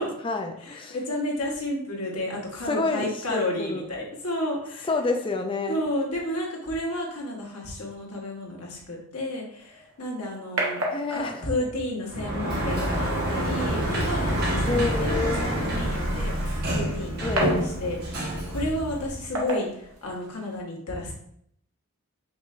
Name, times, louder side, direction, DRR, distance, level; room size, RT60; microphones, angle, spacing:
voice 1, 0.0-0.9 2.7-3.9 4.9-5.8 10.9-11.5 14.7-15.6 17.2-17.6, left 3 dB, 25° left, 5 dB, 0.4 m, -29 dB
voice 2, 0.6-4.9 5.7-10.8 11.1-18.1 18.5-21.1, left 1 dB, 90° left, -2 dB, 1.2 m, -32 dB
sound 1, 9.6-20.6, right 1 dB, 70° right, 1.1 m, -36 dB
Sliding door, 12.1-19.2, right 1 dB, 45° right, 0.9 m, -27 dB
5.3 x 3.2 x 2.5 m, 0.70 s
head